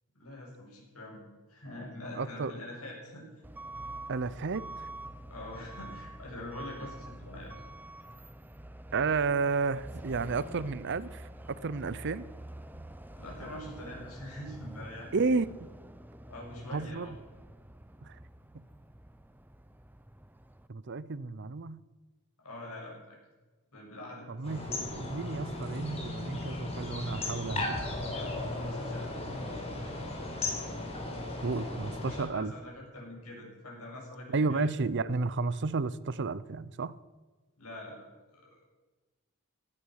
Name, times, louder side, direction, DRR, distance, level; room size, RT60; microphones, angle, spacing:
voice 1, 0.1-3.2 5.3-7.5 13.2-15.1 16.3-17.1 22.4-23.2 23.7-24.3 28.1-29.2 32.0-34.7 37.6-38.1 38.3-38.6, left 1 dB, 80° left, -2 dB, 7.4 m, -44 dB
voice 2, 2.1-2.5 4.1-4.9 8.9-12.3 15.1-15.7 16.7-17.1 18.0-18.2 18.5-18.6 20.7-21.8 24.3-27.8 31.4-32.5 34.3-36.9, right 4 dB, 55° right, 18 dB, 0.6 m, -32 dB
Truck / Alarm, 3.4-20.7, right 1 dB, 10° right, 0.7 m, -47 dB
sound 1, 24.4-32.3, left 2 dB, 30° left, 4.0 m, -36 dB
17.5 x 13.0 x 6.4 m, 1.3 s
head